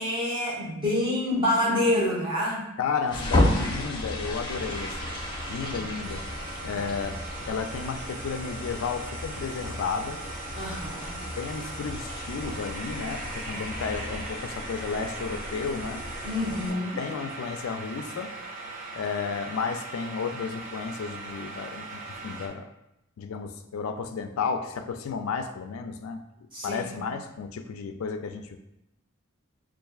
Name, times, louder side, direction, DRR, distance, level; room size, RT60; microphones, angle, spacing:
voice 1, 0.0-2.7 5.7-5.9 6.5-6.8 10.6-11.2 16.2-17.0 26.5-27.1, left 1 dB, 25° right, -6 dB, 1.1 m, -27 dB
voice 2, 2.8-5.2 5.5-6.2 6.6-7.2 7.5-10.2 11.4-16.0 16.7-18.3 18.9-22.7 23.2-26.2 26.6-28.6, left 5 dB, 90° left, 7 dB, 0.4 m, -32 dB
sound 1, 3.1-16.7, left 1 dB, 20° left, 0.6 m, -33 dB
sound 2, 4.5-22.5, right 3 dB, 40° right, 0.5 m, -40 dB
5.5 x 2.4 x 2.3 m, 0.86 s
head